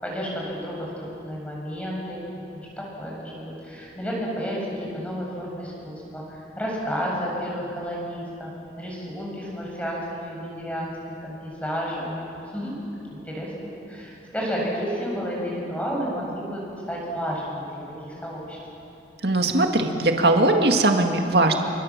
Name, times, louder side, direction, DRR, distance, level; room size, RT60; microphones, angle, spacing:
voice 1, 0.0-8.5 8.8-18.6, equal, 5° left, -3 dB, 7.2 m, -31 dB
voice 2, 19.2-21.7, right 2 dB, 60° right, 3 dB, 2.1 m, -20 dB
29.5 x 25.0 x 7.5 m, 2.9 s
head